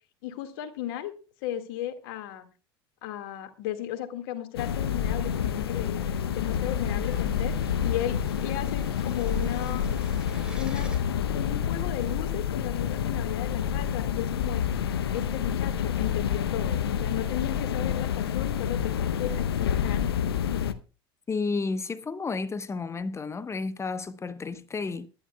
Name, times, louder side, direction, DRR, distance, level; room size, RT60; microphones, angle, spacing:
voice 1, 0.2-1.1 1.4-2.5 3.0-7.5 7.8-9.9 10.5-10.9 11.3-14.7 15.1-20.1, left 12 dB, 65° left, 1.9 m, -35 dB
sound 1, 4.6-20.7, left 8 dB, 80° left, 0.8 m, -28 dB
sound 2, 5.0-11.0, right 1 dB, 5° right, 3.5 m, -49 dB
voice 2, 21.3-25.1, left 4 dB, 20° left, 0.9 m, -31 dB
21.5 x 11.0 x 2.3 m
hypercardioid pair, 75°, 13 cm